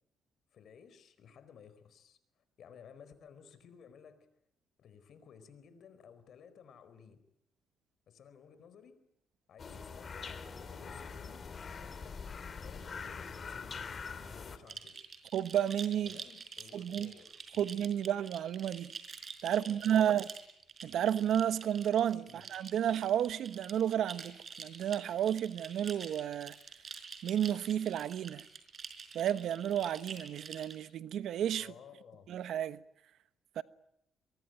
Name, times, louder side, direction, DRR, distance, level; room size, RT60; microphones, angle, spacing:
voice 1, 0.5-2.2 2.6-4.3 4.8-7.2 8.1-9.0 9.5-11.5 11.8-12.2 12.6-15.0 16.0-17.9 19.5-20.2 22.3-22.4 31.6-32.3, left 7 dB, 65° left, 4.4 m, -56 dB
sound 1, 9.6-14.6, left 5 dB, 45° left, 3.2 m, -43 dB
sound 2, 14.7-30.8, right 5 dB, 45° right, 4.7 m, -48 dB
voice 2, 15.3-16.2 16.7-17.1 17.6-18.9 19.4-20.2 20.8-26.5 27.2-28.4 29.1-31.7 32.3-32.8 33.6-33.7, right 10 dB, 75° right, 1.1 m, -32 dB
23.5 x 23.0 x 9.3 m
cardioid pair, 90°, 0 cm